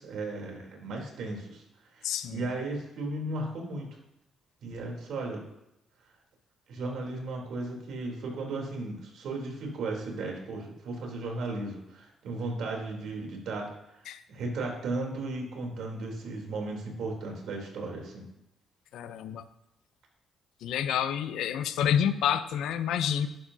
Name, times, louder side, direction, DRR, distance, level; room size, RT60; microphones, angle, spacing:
voice 1, 0.0-1.6 1.9-4.0 4.6-5.5 6.7-14.0 14.3-18.3, right 2 dB, 75° right, 0 dB, 3.4 m, -35 dB
voice 2, 2.0-2.5 14.1-14.2 18.9-19.4 20.6-23.3, left 9 dB, 85° left, 11 dB, 0.7 m, -28 dB
11.5 x 11.0 x 2.8 m, 0.85 s
cardioid pair, 90°, 0 cm